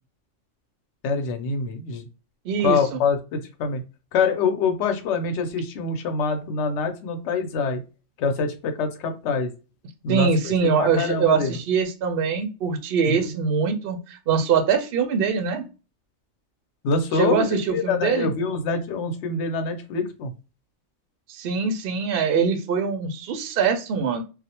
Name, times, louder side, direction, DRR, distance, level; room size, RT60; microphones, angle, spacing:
voice 1, 1.0-2.1 2.6-3.8 4.1-7.8 8.2-9.5 10.0-11.5 13.1-13.2 16.8-20.3, left 4 dB, 70° left, 6 dB, 0.9 m, -25 dB
voice 2, 2.5-3.0 10.1-15.6 17.1-18.3 21.3-24.2, right 6 dB, 65° right, 6 dB, 0.7 m, -23 dB
2.3 x 2.1 x 2.8 m, 0.31 s
omnidirectional pair, 1.3 m